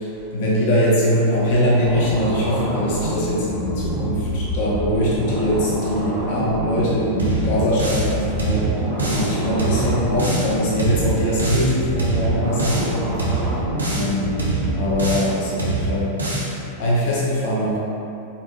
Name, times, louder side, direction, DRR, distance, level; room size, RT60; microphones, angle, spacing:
voice 1, 0.0-8.7 9.0-13.0 13.9-14.4 14.7-17.8, equal, 50° left, -6 dB, 1.2 m, -22 dB
sound 1, 1.8-11.1 11.3-11.4 11.7-12.2, right 1 dB, 80° left, 1.1 m, -38 dB
sound 2, 1.8-15.1, equal, 35° right, 1.2 m, -27 dB
sound 3, 7.2-8.1 8.4-9.3 9.6-10.5 10.8-11.7 12.0-12.9 13.2-14.1 14.4-15.3 15.6-16.5, right 2 dB, 75° right, 0.8 m, -24 dB
4.4 x 3.1 x 3.1 m, 2.8 s
figure-of-eight pair, 90°, 0 cm